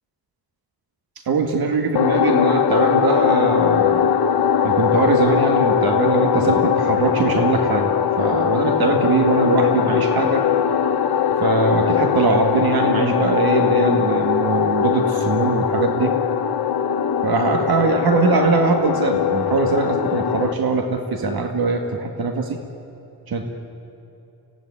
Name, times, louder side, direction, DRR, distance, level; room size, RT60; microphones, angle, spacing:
voice 1, 1.3-4.1 4.6-10.5 11.4-16.1 17.2-22.6 23.3-23.5, right 4 dB, 70° right, 4 dB, 2.1 m, -21 dB
sound 1, 1.9-20.5, left 8 dB, 80° left, 1.4 m, -20 dB
25.5 x 17.5 x 9.9 m, 2.9 s
wide cardioid pair, 125°, 38 cm